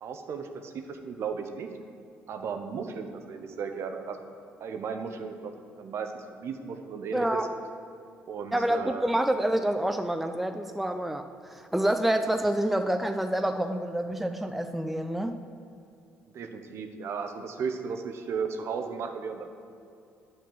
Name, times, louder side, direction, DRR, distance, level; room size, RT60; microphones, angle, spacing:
voice 1, 0.0-1.7 2.3-4.2 4.6-5.5 5.8-7.4 8.3-9.1 16.3-19.5, right 6 dB, 50° right, 6 dB, 0.7 m, -35 dB
voice 2, 7.1-7.4 8.5-15.4, right 1 dB, 5° right, 7 dB, 0.4 m, -27 dB
9.2 x 4.5 x 7.4 m, 2.6 s
figure-of-eight pair, 50°, 6 cm